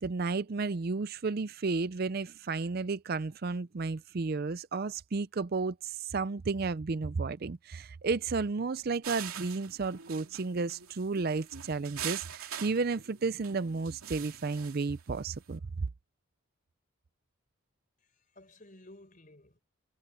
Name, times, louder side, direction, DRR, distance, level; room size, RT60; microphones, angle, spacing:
voice 1, 0.0-15.9, right 4 dB, 45° right, 0.5 m, -32 dB
sound 1, 9.0-15.4, right 10 dB, 85° right, 2.8 m, -43 dB
voice 2, 18.0-19.6, left 1 dB, 40° left, 4.9 m, -55 dB
head